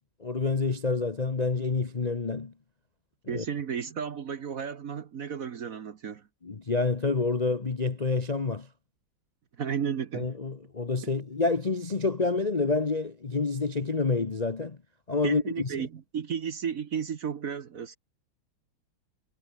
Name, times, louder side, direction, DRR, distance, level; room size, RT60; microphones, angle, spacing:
voice 1, 0.2-2.5 3.3-3.4 6.4-8.7 10.1-14.8 15.1-15.9, left 3 dB, 30° left, 0.7 m, -28 dB
voice 2, 3.3-6.2 9.6-10.3 11.0-11.1 15.2-18.0, right 7 dB, 50° right, 1.2 m, -33 dB
omnidirectional pair, 2.2 m